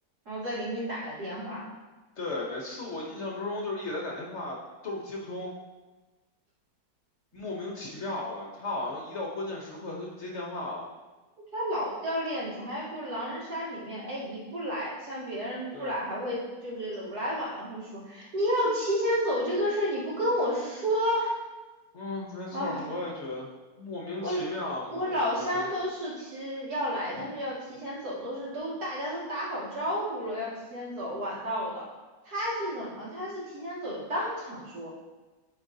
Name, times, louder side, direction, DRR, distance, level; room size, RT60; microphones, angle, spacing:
voice 1, 0.3-1.6 11.5-21.3 22.5-22.9 24.2-24.4 24.9-31.8 32.2-34.9, equal, 70° right, -7 dB, 2.6 m, -31 dB
voice 2, 2.2-4.6 4.8-5.5 7.3-10.9 15.7-16.0 21.9-23.5 23.8-25.6 27.2-27.3, left 2 dB, 50° left, -2 dB, 1.0 m, -35 dB
11.0 x 4.5 x 2.7 m, 1.2 s
omnidirectional pair, 1.7 m